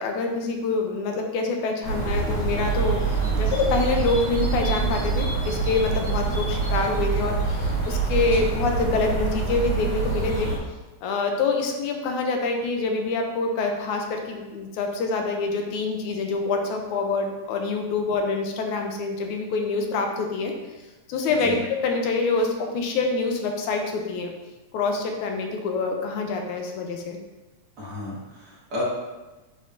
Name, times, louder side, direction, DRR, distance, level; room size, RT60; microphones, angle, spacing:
voice 1, 0.0-10.5 11.0-20.5 21.1-24.3 24.7-27.2, left 4 dB, 80° left, 2 dB, 2.1 m, -26 dB
sound 1, 1.8-10.6, right 4 dB, 35° right, 2.0 m, -25 dB
voice 2, 3.1-3.5 8.3-8.5 21.4-21.6 27.8-28.8, left 1 dB, 50° right, -7 dB, 2.3 m, -34 dB
9.2 x 4.2 x 2.7 m, 1.1 s
omnidirectional pair, 3.5 m